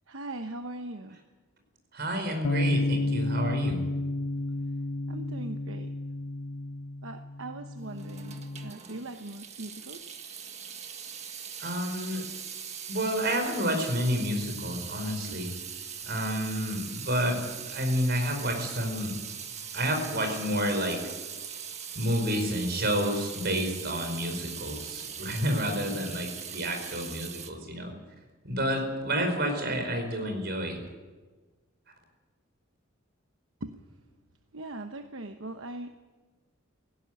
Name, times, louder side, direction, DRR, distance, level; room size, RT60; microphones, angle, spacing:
voice 1, 0.1-1.2 5.1-5.9 7.0-10.0 12.1-12.3 15.3-15.4 33.6-33.8 34.5-36.0, right 2 dB, 75° right, 6 dB, 1.1 m, -40 dB
voice 2, 1.9-3.9 11.6-12.2 12.9-15.5 16.0-17.4 17.7-19.1 19.7-21.0 21.9-27.9 28.4-30.8, equal, 50° right, 4 dB, 5.2 m, -29 dB
sound 1, 2.4-8.7, left 2 dB, 70° left, 0.7 m, -31 dB
Water tap faucet / Sink (filling or washing) / Drip, 7.9-27.5, right 7 dB, 35° right, 1.6 m, -41 dB
18.0 x 16.5 x 9.4 m, 1.3 s
head